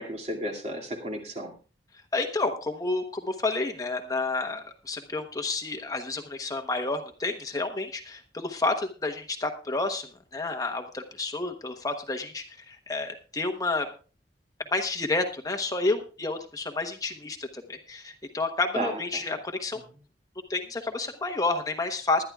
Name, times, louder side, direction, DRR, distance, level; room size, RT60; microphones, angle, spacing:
voice 1, 0.0-1.5 18.7-19.2, right 1 dB, 40° right, 1 dB, 2.4 m, -33 dB
voice 2, 2.1-13.9 14.7-19.8 20.5-22.2, left 3 dB, 20° left, 4 dB, 1.0 m, -30 dB
20.5 x 11.5 x 2.4 m, 0.36 s
head